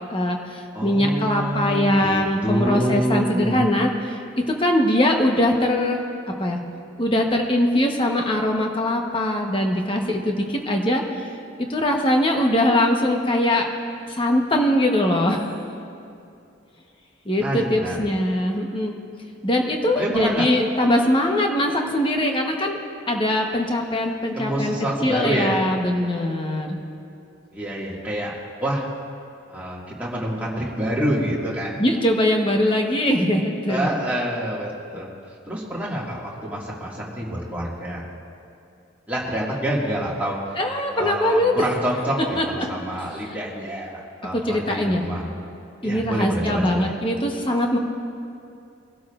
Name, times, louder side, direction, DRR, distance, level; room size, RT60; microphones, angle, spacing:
voice 1, 0.1-6.0 6.4-6.6 7.0-11.3 11.7-13.7 14.1-15.5 17.2-18.9 19.4-22.8 23.1-24.8 25.0-26.8 31.8-33.9 40.6-41.5 42.3-42.7 43.2-43.3 44.3-45.1 45.8-47.8, left 1 dB, 25° left, 1 dB, 1.1 m, -21 dB
voice 2, 0.7-3.6 17.4-18.0 20.0-20.5 24.3-25.6 27.5-28.3 28.6-28.8 29.5-31.8 33.7-35.1 35.5-38.0 39.1-40.6 41.0-42.2 42.5-45.2 45.8-46.9, right 1 dB, 10° right, -6 dB, 2.0 m, -27 dB
22.0 x 12.0 x 2.5 m, 2.5 s
head